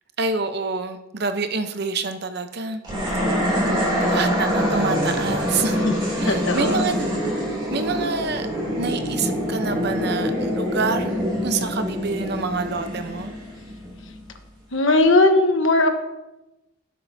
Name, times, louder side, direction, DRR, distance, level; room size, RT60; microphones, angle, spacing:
voice 1, 0.2-2.8 3.5-3.6 4.0-5.8 6.2-7.1 7.7-8.5 8.8-13.3, right 4 dB, 55° right, 8 dB, 0.8 m, -27 dB
sound 1, 2.8-14.2, equal, 25° right, 2.8 m, -25 dB
voice 2, 2.9-3.8 4.0-4.3 5.8-5.9 6.2-6.9 14.7-15.9, left 2 dB, 75° left, 6 dB, 1.2 m, -20 dB
17.0 x 7.7 x 2.7 m, 0.97 s
head